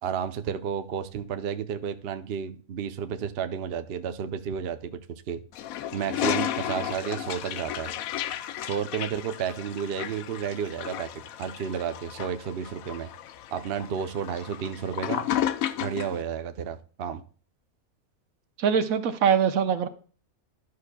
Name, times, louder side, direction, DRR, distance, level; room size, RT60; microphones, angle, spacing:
voice 1, 0.0-5.4 5.9-7.9 8.6-11.1 11.4-13.1 13.5-15.2 15.8-17.2, right 8 dB, 55° right, 0.7 m, -32 dB
Toilet flush, 5.5-16.2, left 11 dB, 75° left, 1.0 m, -33 dB
voice 2, 18.6-19.9, right 7 dB, 75° right, 1.2 m, -23 dB
11.5 x 6.6 x 2.2 m
omnidirectional pair, 1.5 m